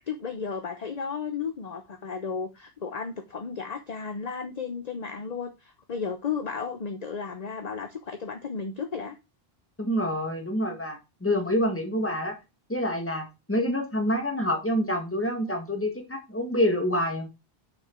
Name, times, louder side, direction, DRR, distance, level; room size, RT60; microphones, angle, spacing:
voice 1, 0.1-9.2, left 5 dB, 45° left, 7 dB, 0.9 m, -34 dB
voice 2, 9.8-12.4 12.7-17.3, equal, 15° left, 3 dB, 1.7 m, -27 dB
6.4 x 6.0 x 4.4 m, 0.25 s
omnidirectional pair, 1.1 m